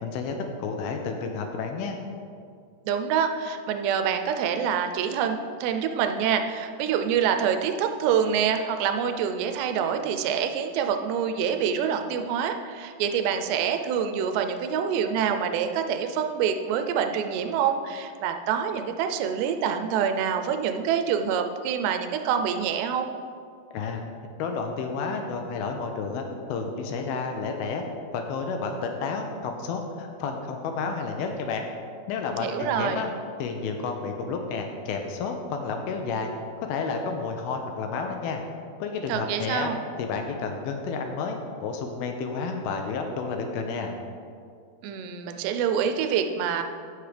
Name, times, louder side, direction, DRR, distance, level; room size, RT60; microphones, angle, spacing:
voice 1, 0.0-2.0 23.7-24.0 24.4-27.8 28.1-31.6 32.1-33.1 33.4-36.3 36.6-38.4 38.8-39.7 40.0-44.0, left 4 dB, 75° left, 4 dB, 2.4 m, -31 dB
voice 2, 2.9-23.1 32.4-33.0 39.1-39.8 44.8-46.6, right 7 dB, 90° right, 7 dB, 2.8 m, -26 dB
15.0 x 6.2 x 3.4 m, 2.3 s
omnidirectional pair, 4.8 m